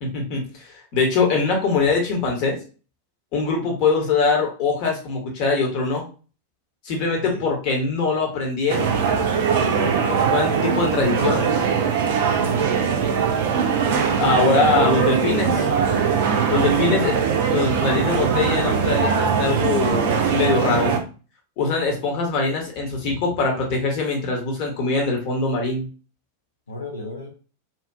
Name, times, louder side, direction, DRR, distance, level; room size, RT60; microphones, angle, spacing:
voice 1, 0.0-0.5 0.9-2.6 3.3-6.0 6.8-9.0 10.1-11.6 14.2-15.7 16.5-17.1 17.5-21.0 21.6-25.9, left 4 dB, 45° left, 1.0 m, -22 dB
sound 1, 8.7-21.0, right 6 dB, 55° right, 0.4 m, -21 dB
voice 2, 9.5-10.1 12.2-12.7 16.5-17.2 26.7-27.3, equal, 75° left, 0.5 m, -33 dB
2.7 x 2.4 x 2.3 m
figure-of-eight pair, 90°, 0 cm